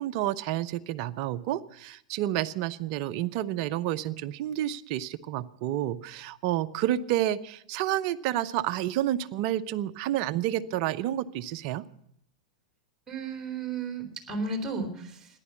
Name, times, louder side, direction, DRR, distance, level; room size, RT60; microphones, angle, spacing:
voice 1, 0.0-11.8, right 13 dB, 50° right, 12 dB, 0.8 m, -30 dB
voice 2, 13.1-15.3, right 3 dB, 15° right, 1 dB, 3.8 m, -34 dB
14.5 x 11.0 x 8.3 m, 0.72 s
hypercardioid pair, 100°, 4 cm